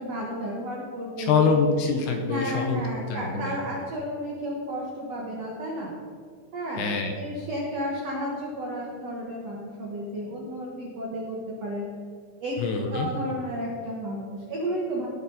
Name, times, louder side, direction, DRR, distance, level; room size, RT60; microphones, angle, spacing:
voice 1, 0.0-1.5 2.2-5.9 6.5-11.9 12.4-12.6 12.9-15.1, equal, 85° right, -3 dB, 1.4 m, -32 dB
voice 2, 1.2-2.8 3.1-3.6 6.7-7.2 12.6-13.1, left 4 dB, 75° left, 4 dB, 2.5 m, -25 dB
18.5 x 7.2 x 4.1 m, 2.1 s
omnidirectional pair, 5.5 m